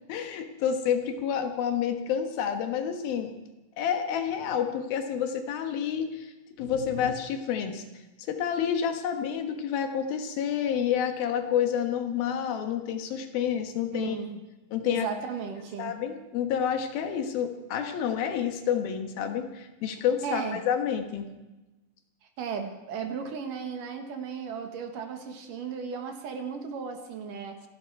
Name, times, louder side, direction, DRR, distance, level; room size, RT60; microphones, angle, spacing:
voice 1, 0.1-3.3 3.8-6.3 6.6-7.8 8.3-14.2 14.7-15.1 15.8-21.3, left 8 dB, 80° left, 6 dB, 3.2 m, -29 dB
voice 2, 13.9-14.4 14.8-16.0 20.2-20.6 22.4-27.6, right 6 dB, 65° right, 5 dB, 3.0 m, -35 dB
26.5 x 11.5 x 4.7 m, 1.1 s
omnidirectional pair, 4.2 m